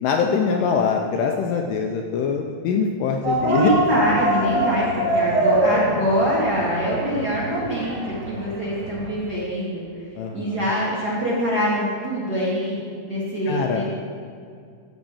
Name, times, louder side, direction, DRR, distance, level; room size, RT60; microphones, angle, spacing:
voice 1, 0.0-3.7 10.2-10.6 13.5-13.8, left 6 dB, 85° left, 3 dB, 2.0 m, -23 dB
sound 1, 3.2-9.1, right 1 dB, 75° right, 3.7 m, -24 dB
voice 2, 3.4-9.9 10.3-12.8 13.0-13.8, equal, 40° right, -8 dB, 1.6 m, -24 dB
13.0 x 5.2 x 7.0 m, 2.2 s
omnidirectional pair, 4.4 m